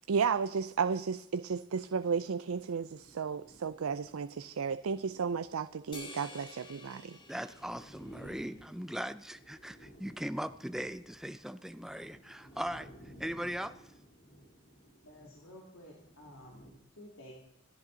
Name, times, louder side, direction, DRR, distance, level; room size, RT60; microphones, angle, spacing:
voice 1, 0.1-7.2, right 6 dB, 80° right, 0.5 m, -33 dB
sound 1, 2.7-16.7, equal, 40° left, 3.4 m, -57 dB
sound 2, 5.9-8.6, left 2 dB, 20° left, 2.4 m, -50 dB
voice 2, 7.3-13.8, equal, ahead, 0.5 m, -39 dB
voice 3, 15.0-17.3, equal, 75° left, 2.6 m, -52 dB
27.5 x 11.0 x 4.0 m
head